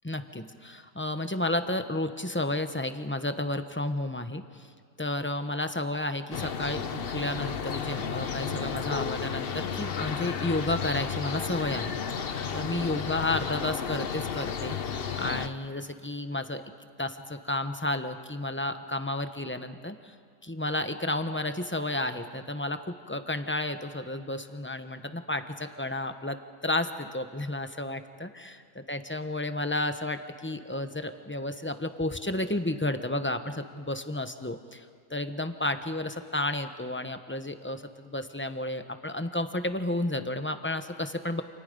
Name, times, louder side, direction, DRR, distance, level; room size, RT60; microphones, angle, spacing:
voice 1, 0.0-4.7 5.0-11.9 12.2-16.6 17.0-20.1 20.4-41.4, left 1 dB, 10° left, 8 dB, 0.7 m, -32 dB
sound 1, 6.3-15.5, left 6 dB, 45° left, 0.9 m, -33 dB
29.0 x 28.0 x 5.4 m, 2.1 s
omnidirectional pair, 1.7 m